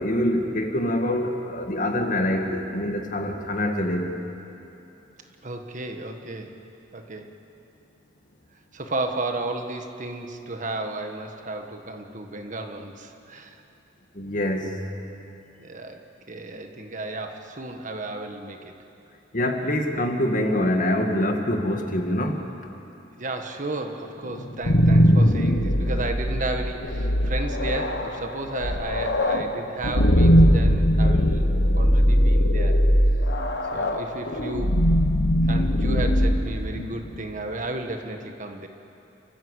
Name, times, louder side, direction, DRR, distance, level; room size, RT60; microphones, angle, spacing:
voice 1, 0.0-4.2 14.1-14.8 19.3-22.5, left 1 dB, 45° left, 4 dB, 1.9 m, -25 dB
voice 2, 5.4-6.6 6.9-7.3 8.7-13.6 15.6-18.7 23.2-32.8 33.7-34.7 35.4-38.7, right 2 dB, 45° right, 5 dB, 1.6 m, -33 dB
sound 1, 24.4-37.2, equal, 70° left, 1.6 m, -20 dB
29.5 x 14.5 x 8.3 m, 2.8 s
head